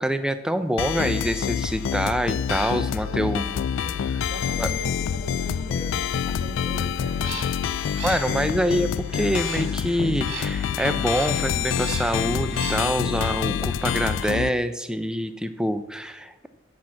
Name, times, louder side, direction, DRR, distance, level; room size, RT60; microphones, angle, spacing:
voice 1, 0.0-3.5 4.6-4.7 8.0-16.5, equal, 5° right, 10 dB, 0.5 m, -26 dB
sound 1, 0.8-14.5, left 8 dB, 75° left, 0.3 m, -27 dB
voice 2, 2.8-7.4, right 1 dB, 45° right, -4 dB, 1.6 m, -39 dB
sound 2, 7.0-13.0, right 4 dB, 90° right, 1.6 m, -39 dB
8.4 x 5.9 x 7.6 m, 1.1 s
head